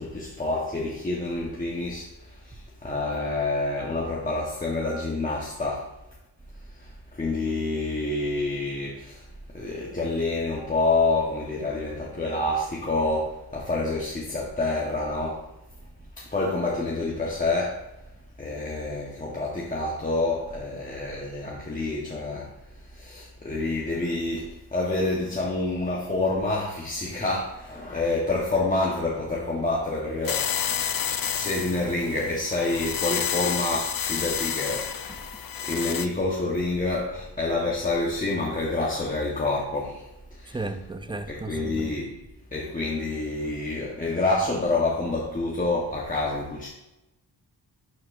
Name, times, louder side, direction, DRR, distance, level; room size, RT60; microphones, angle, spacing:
voice 1, 0.0-5.9 6.7-15.5 16.2-17.8 18.4-22.5 22.8-30.5 31.2-35.3 35.6-40.7 41.3-42.2 42.5-46.7, left 2 dB, 20° left, 1.0 m, -28 dB
sound 1, 30.2-36.1, left 9 dB, 55° left, 0.5 m, -30 dB
voice 2, 40.5-41.9, right 2 dB, 15° right, 0.4 m, -34 dB
11.0 x 4.3 x 2.5 m
wide cardioid pair, 115°, 42 cm